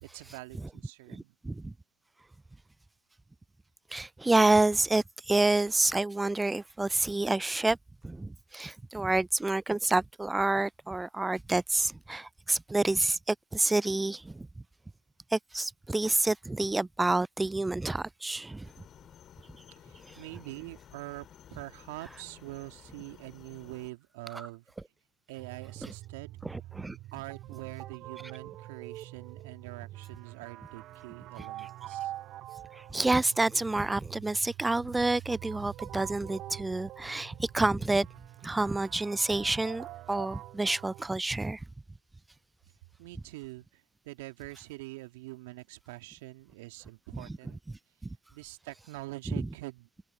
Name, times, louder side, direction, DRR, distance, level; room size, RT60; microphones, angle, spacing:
voice 1, 0.0-1.3 19.8-24.6 25.3-26.4 27.1-32.1 43.0-47.6 48.3-49.9, right 21 dB, 65° right, 2.2 m, -44 dB
voice 2, 1.1-1.7 3.9-7.8 8.0-14.5 15.3-18.7 20.1-20.2 24.3-24.5 26.4-27.0 32.7-38.1 38.4-41.6 47.1-47.3 49.4-49.5, right 2 dB, 10° right, 0.4 m, -28 dB
sound 1, 18.6-23.9, left 10 dB, 35° left, 2.4 m, -54 dB
sound 2, 25.4-41.0, right 14 dB, 45° right, 0.8 m, -45 dB
hypercardioid pair, 85°, 0 cm